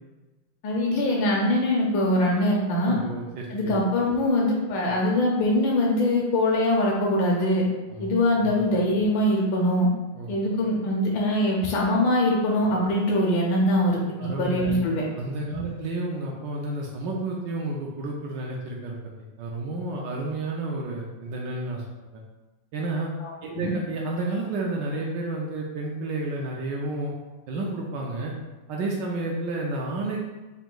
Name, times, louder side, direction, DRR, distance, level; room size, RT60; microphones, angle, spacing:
voice 1, 0.6-3.0 3.5-7.6 8.0-9.9 10.3-15.0 15.5-15.7 23.2-23.7, left 1 dB, 70° left, -2 dB, 1.3 m, -23 dB
voice 2, 2.8-3.8 7.9-8.1 8.4-8.6 10.1-10.3 14.2-14.8 15.2-19.0 19.4-21.8 22.1-22.2 22.7-23.1 23.4-27.1 27.5-28.3 28.7-30.2, right 2 dB, 75° right, -1 dB, 1.1 m, -31 dB
4.0 x 2.5 x 3.7 m, 1.1 s
omnidirectional pair, 2.3 m